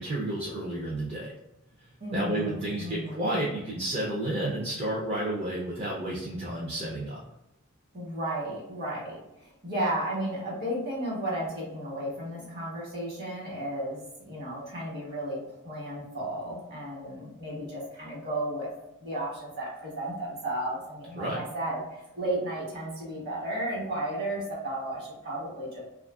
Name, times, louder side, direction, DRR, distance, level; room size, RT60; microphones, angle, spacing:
voice 1, 0.0-1.3 2.1-7.2 21.2-21.4, right 1 dB, 30° right, -5 dB, 0.4 m, -31 dB
voice 2, 2.0-3.3 7.9-18.7 19.0-21.8 22.1-25.8, right 1 dB, 50° right, -4 dB, 1.2 m, -33 dB
2.7 x 2.4 x 2.3 m, 0.90 s
head